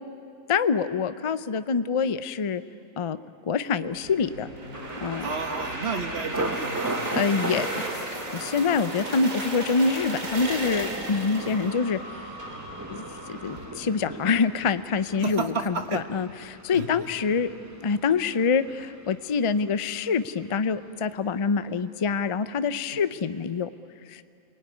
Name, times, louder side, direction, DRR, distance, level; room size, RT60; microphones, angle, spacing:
voice 1, 0.5-2.6 3.0-3.2 3.5-4.5 5.0-5.3 7.1-8.1 8.3-12.0 12.9-17.5 17.8-23.7 24.1-24.2, left 5 dB, 40° left, 12 dB, 0.4 m, -26 dB
sound 1, 3.9-13.6, right 2 dB, 65° right, 3.2 m, -35 dB
Thunder, 4.7-20.5 20.8-21.4 21.8-22.1, right 2 dB, 15° right, 0.9 m, -38 dB
voice 2, 5.2-7.4 15.1-16.0 16.7-16.9 22.9-23.0, right 5 dB, 45° right, 7 dB, 1.5 m, -32 dB
29.5 x 20.5 x 9.7 m, 2.5 s
omnidirectional pair, 1.5 m